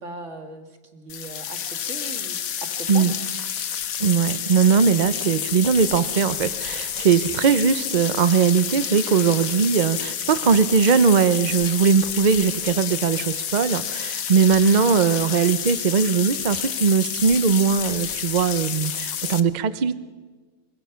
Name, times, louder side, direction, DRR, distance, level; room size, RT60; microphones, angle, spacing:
voice 1, 0.0-3.1, right 2 dB, 40° right, 6 dB, 2.2 m, -39 dB
sound 1, 1.1-19.4, left 9 dB, 55° left, 1.2 m, -29 dB
voice 2, 4.0-20.0, right 6 dB, 70° right, 14 dB, 0.4 m, -20 dB
25.5 x 22.5 x 5.8 m, 1.4 s
omnidirectional pair, 1.9 m